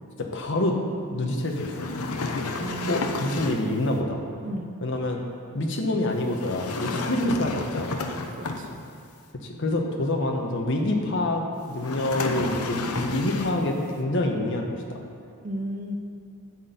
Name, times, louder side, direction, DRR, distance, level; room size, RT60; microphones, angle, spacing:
voice 1, 0.2-0.8 1.1-1.9 2.9-4.2 4.8-5.2 5.5-8.1 9.4-15.0, left 1 dB, 55° left, 1 dB, 1.1 m, -27 dB
sound 1, 1.5-3.8 6.3-9.0 11.8-13.7, left 3 dB, 85° left, 0.8 m, -31 dB
voice 2, 2.6-3.4 4.4-4.8 6.9-7.1 8.3-8.7 15.4-16.0, right 1 dB, 35° right, 4 dB, 0.6 m, -34 dB
11.5 x 4.4 x 8.1 m, 2.5 s
head